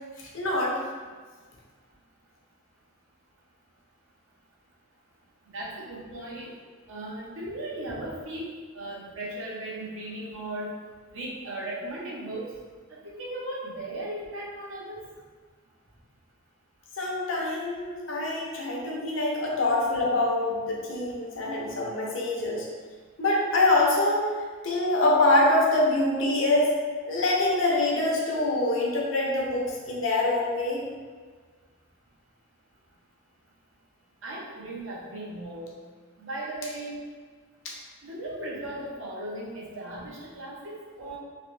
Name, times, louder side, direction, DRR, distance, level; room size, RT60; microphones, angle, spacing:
voice 1, 0.2-0.8 17.0-22.7 23.2-26.7 27.0-30.8 37.6-37.7, left 2 dB, 70° left, -2 dB, 0.8 m, -25 dB
voice 2, 5.5-6.5 6.9-8.5 8.7-10.7 11.1-12.4 13.0-15.0 34.2-35.7 36.2-37.0 38.0-41.2, right 1 dB, 70° right, -5 dB, 0.9 m, -37 dB
3.2 x 3.0 x 3.2 m, 1.5 s
head